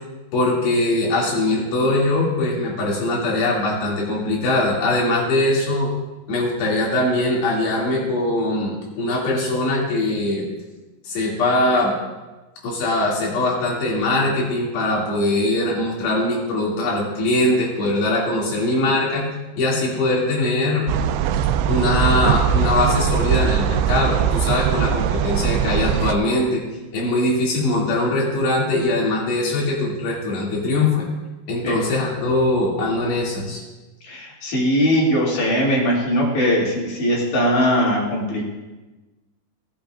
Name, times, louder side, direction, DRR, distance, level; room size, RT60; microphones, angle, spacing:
voice 1, 0.3-5.9 6.3-10.5 11.0-11.9 12.6-19.3 19.6-20.9 21.7-26.6 26.9-31.1 31.5-33.6, left 2 dB, 80° left, -4 dB, 4.7 m, -21 dB
sound 1, 20.9-26.1, right 8 dB, 90° right, 2.7 m, -20 dB
voice 2, 34.0-38.4, equal, 55° left, -4 dB, 3.9 m, -20 dB
18.5 x 8.6 x 2.5 m, 1.1 s
omnidirectional pair, 4.8 m